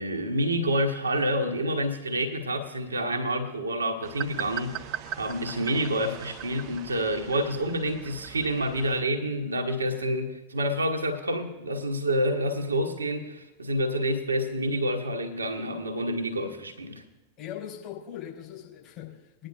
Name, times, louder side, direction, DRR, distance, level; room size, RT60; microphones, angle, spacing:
voice 1, 0.0-4.9 5.2-17.0, equal, 75° right, 1.3 m, -28 dB
sound 1, 4.0-9.0, right 11 dB, 40° right, 0.6 m, -39 dB
voice 2, 17.4-19.5, left 10 dB, 40° left, 4.2 m, -40 dB
21.0 x 10.0 x 2.5 m
figure-of-eight pair, 90°, 0 cm